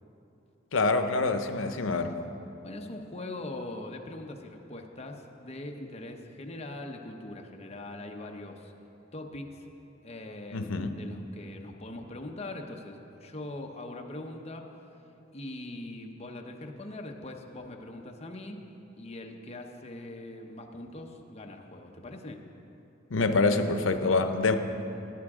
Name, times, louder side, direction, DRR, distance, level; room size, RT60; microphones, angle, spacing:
voice 1, 0.7-2.2 10.5-10.9 23.1-24.6, left 3 dB, 90° left, 8 dB, 0.7 m, -26 dB
voice 2, 2.6-8.7 9.1-9.7 10.0-14.7 15.3-18.6 19.0-22.4, left 2 dB, 35° left, 2 dB, 0.9 m, -41 dB
16.5 x 9.5 x 3.6 m, 2.9 s
head